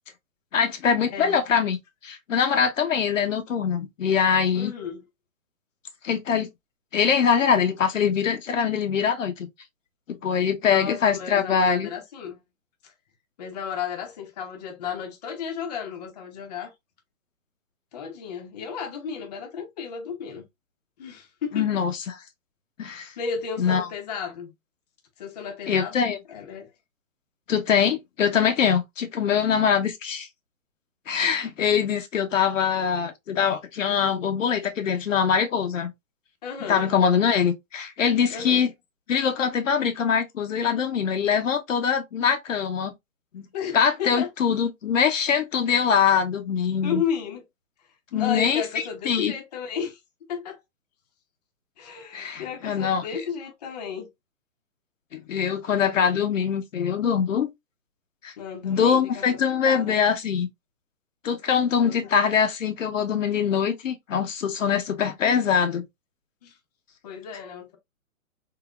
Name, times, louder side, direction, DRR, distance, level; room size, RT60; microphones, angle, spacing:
voice 1, 0.5-1.8 2.0-4.7 6.0-6.5 6.9-9.5 10.1-11.9 21.5-22.2 22.8-23.1 23.6-23.9 25.7-26.2 27.5-30.3 31.1-35.9 36.7-38.7 39.1-42.9 43.3-43.5 43.7-47.0 48.1-48.6 49.0-49.3 52.1-53.2 55.1-57.5 58.2-58.3 58.6-60.5 61.2-65.8, left 7 dB, 65° left, 0.8 m, -23 dB
voice 2, 1.1-1.4 4.5-5.0 10.7-12.4 12.8-12.9 13.4-16.7 17.9-20.4 21.0-21.7 22.9-24.5 25.2-26.7 33.9-34.1 36.4-36.9 38.3-38.7 43.5-44.3 46.8-47.4 48.1-50.0 50.3-50.6 51.8-54.1 58.4-60.0 61.8-62.1 66.4-66.5 67.0-67.8, left 7 dB, 30° left, 0.7 m, -33 dB
3.8 x 2.7 x 2.3 m
hypercardioid pair, 155°, 42 cm